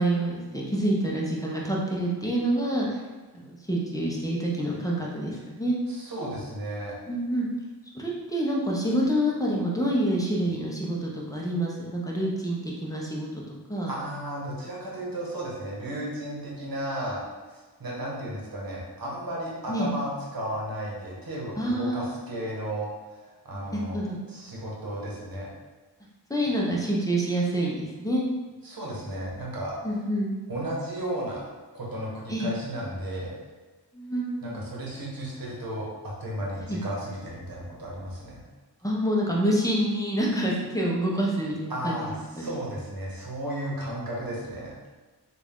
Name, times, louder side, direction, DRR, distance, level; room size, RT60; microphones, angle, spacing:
voice 1, 0.0-2.9 3.3-5.8 7.1-7.5 7.9-13.3 13.7-13.9 19.7-19.9 21.6-22.1 23.5-24.2 26.3-28.2 29.8-30.4 32.3-32.5 33.9-34.6 36.7-36.8 38.8-42.1 42.4-42.5, right 1 dB, 10° left, -3 dB, 0.7 m, -27 dB
voice 2, 5.9-7.0 13.8-17.2 17.5-24.0 24.3-25.5 28.6-29.7 30.5-31.4 31.7-33.3 34.4-38.4 41.7-44.7, right 1 dB, 55° right, -4 dB, 1.1 m, -34 dB
3.4 x 2.5 x 3.5 m, 1.2 s
wide cardioid pair, 70°, 42 cm